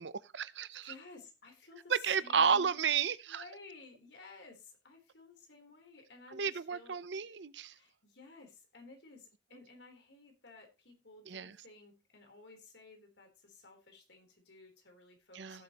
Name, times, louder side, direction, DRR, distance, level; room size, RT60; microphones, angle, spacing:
voice 1, 0.0-0.9 1.9-3.4 6.3-7.7 11.3-11.6 15.3-15.6, right 6 dB, 80° right, 0.7 m, -32 dB
voice 2, 0.8-2.7 3.3-7.0 7.7-15.6, left 3 dB, 75° left, 3.7 m, -55 dB
17.0 x 7.7 x 3.0 m
head